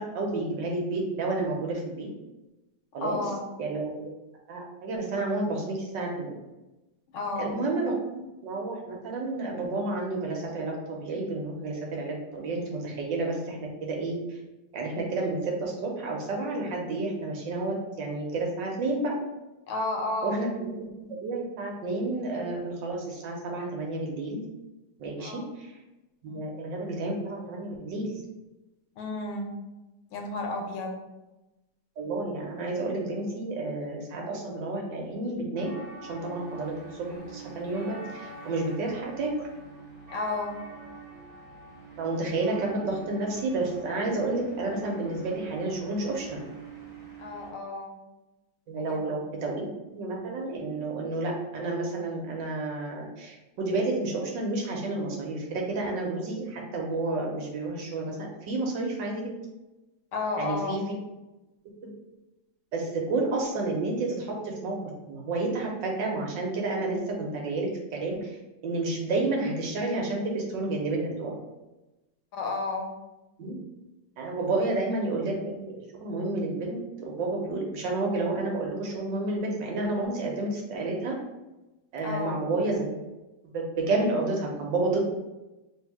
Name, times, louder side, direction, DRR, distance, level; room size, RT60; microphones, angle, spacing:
voice 1, 0.0-2.1 2.9-3.2 3.6-4.1 4.5-6.3 7.4-14.4 14.7-19.1 20.2-24.4 25.0-25.7 26.2-28.1 32.0-35.7 36.1-39.3 42.0-46.4 48.7-59.2 60.4-60.8 61.8-61.9 62.7-64.8 65.1-68.4 68.6-71.4 73.4-73.6 74.2-81.1 81.9-82.9 83.5-85.0, right 2 dB, 70° right, -1 dB, 1.3 m, -30 dB
voice 2, 3.0-3.4 7.1-7.6 19.7-20.4 25.2-25.4 26.3-26.5 28.9-29.6 30.1-31.0 40.1-40.6 47.2-48.0 48.8-49.2 60.1-60.8 72.3-72.9 82.0-82.4, left 2 dB, 85° left, 2 dB, 1.6 m, -32 dB
sound 1, 35.5-47.5, right 3 dB, 30° right, 1.2 m, -45 dB
3.3 x 2.7 x 4.6 m, 1.0 s
omnidirectional pair, 2.3 m